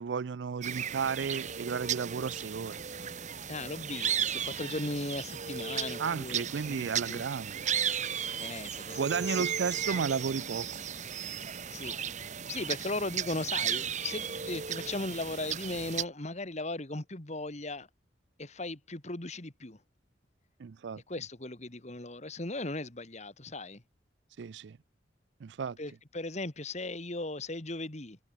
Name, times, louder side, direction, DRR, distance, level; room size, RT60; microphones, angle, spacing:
voice 1, 0.0-2.8 6.0-7.7 9.0-10.7 20.6-21.0 24.4-24.8 25.4-25.8, right 6 dB, 70° right, 0.4 m, -33 dB
sound 1, 0.6-16.0, right 8 dB, 40° right, 1.2 m, -35 dB
voice 2, 3.5-7.2 8.4-9.5 9.9-10.1 11.7-12.0 12.5-17.9 18.4-19.8 21.1-23.8 25.8-28.2, left 2 dB, 40° left, 2.0 m, -37 dB
head